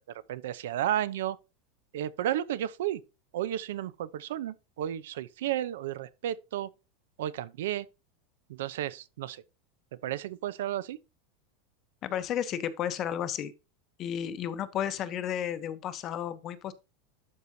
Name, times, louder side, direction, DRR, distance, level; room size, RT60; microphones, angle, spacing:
voice 1, 0.0-1.4 1.9-3.0 3.3-6.7 7.2-7.9 8.5-9.4 10.0-11.0, right 12 dB, 80° right, 0.7 m, -33 dB
voice 2, 12.0-13.5 14.0-16.7, left 10 dB, 30° left, 0.9 m, -33 dB
12.0 x 4.8 x 2.8 m
supercardioid pair, 170°, 0 cm